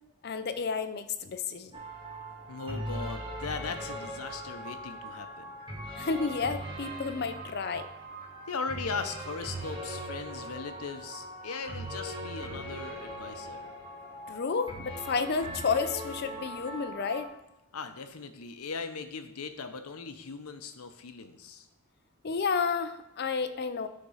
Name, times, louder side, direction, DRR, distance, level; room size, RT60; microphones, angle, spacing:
voice 1, 0.2-1.7 6.0-7.9 14.3-17.3 22.2-23.9, left 5 dB, 45° left, 8 dB, 0.5 m, -31 dB
sound 1, 1.7-17.2, right 1 dB, 20° right, 1.6 m, -40 dB
voice 2, 2.5-5.5 8.5-13.7 17.7-21.7, left 5 dB, 85° left, 8 dB, 0.7 m, -39 dB
10.0 x 3.7 x 5.5 m, 0.89 s
head